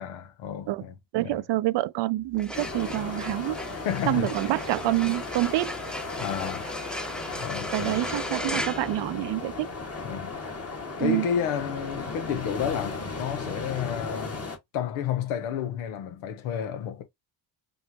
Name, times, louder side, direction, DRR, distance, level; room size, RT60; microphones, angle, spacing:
voice 1, 0.0-0.9 1.2-1.4 3.7-4.5 6.2-6.7 7.4-8.0 10.0-10.4 11.0-14.5 14.7-17.0, left 8 dB, 85° left, 1.1 m, -31 dB
voice 2, 1.1-3.6 4.1-5.7 7.7-9.7 11.0-11.3, right 17 dB, 60° right, 0.5 m, -27 dB
sound 1, 2.2-9.7, equal, ahead, 0.5 m, -37 dB
sound 2, 2.5-14.6, left 3 dB, 30° left, 1.7 m, -36 dB
5.3 x 2.6 x 2.9 m
supercardioid pair, 60°, 49 cm